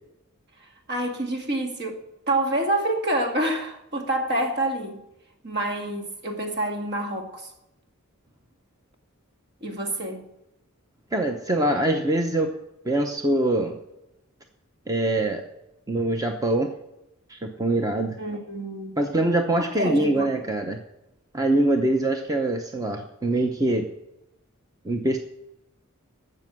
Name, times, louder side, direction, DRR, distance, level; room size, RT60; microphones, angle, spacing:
voice 1, 0.6-2.0 2.3-5.0 5.4-7.5 9.6-10.2 18.2-19.0 19.8-20.3, right 1 dB, 50° right, 2.1 m, -27 dB
voice 2, 11.1-12.5 12.8-13.8 14.9-15.4 15.9-16.7 17.3-18.2 19.0-20.8 21.3-23.9 24.8-25.2, right 1 dB, 15° right, 0.8 m, -23 dB
13.0 x 7.7 x 7.5 m
head